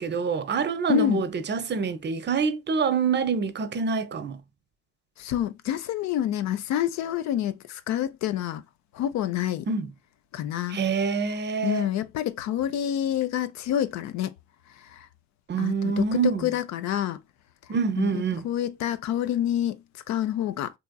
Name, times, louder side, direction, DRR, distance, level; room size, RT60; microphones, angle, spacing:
voice 1, 0.0-4.4 9.7-9.9 10.7-11.9 15.5-16.5 17.7-18.4, right 5 dB, 35° right, 0.6 m, -26 dB
voice 2, 0.9-1.2 5.2-8.6 9.0-9.6 10.3-10.8 11.6-14.3 15.6-17.2 18.0-18.1 18.4-19.8 20.1-20.7, left 11 dB, 60° left, 0.5 m, -27 dB
3.4 x 2.9 x 2.2 m
hypercardioid pair, 50°, 32 cm